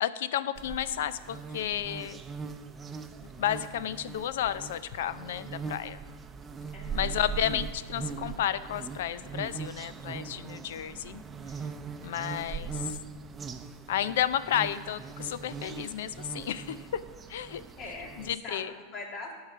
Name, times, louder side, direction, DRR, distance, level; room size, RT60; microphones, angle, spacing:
voice 1, 0.0-2.2 3.4-6.0 6.9-11.2 12.0-13.0 13.9-17.0 17.3-17.6 18.3-18.7, left 10 dB, 80° left, 15 dB, 0.5 m, -32 dB
sound 1, 0.5-18.4, right 5 dB, 25° right, 0.7 m, -40 dB
voice 2, 6.7-7.2 17.8-19.3, left 3 dB, 40° left, 0 dB, 2.4 m, -42 dB
12.5 x 4.8 x 5.8 m, 1.4 s
hypercardioid pair, 110°, 0 cm